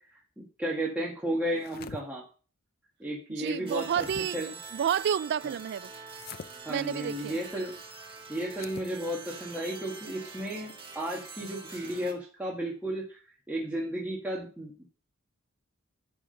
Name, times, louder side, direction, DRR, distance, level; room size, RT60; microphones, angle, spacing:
voice 1, 0.4-2.2 3.0-4.0 4.3-4.5 5.4-5.5 6.6-7.8 8.3-13.2 13.5-14.8, right 1 dB, 5° right, 1.7 m, -33 dB
sound 1, 1.5-2.0 3.5-4.2 6.1-6.5 8.5-8.9, left 5 dB, 45° left, 0.6 m, -44 dB
voice 2, 3.3-4.4 4.7-5.9 6.7-7.4, right 8 dB, 55° right, 0.3 m, -30 dB
sound 2, 3.7-12.1, right 5 dB, 25° right, 1.6 m, -45 dB
11.0 x 3.8 x 6.5 m
head